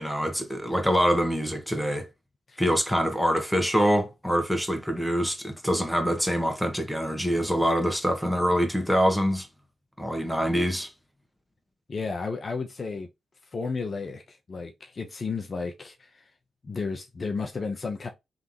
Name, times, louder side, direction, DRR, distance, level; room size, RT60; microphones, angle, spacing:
voice 1, 0.0-2.1 2.6-9.5 10.0-10.9, equal, ahead, 1.5 m, -25 dB
voice 2, 11.9-13.1 13.5-16.2 16.6-18.1, left 4 dB, 50° left, 0.9 m, -33 dB
3.8 x 3.5 x 3.0 m
hypercardioid pair, 40°, 0 cm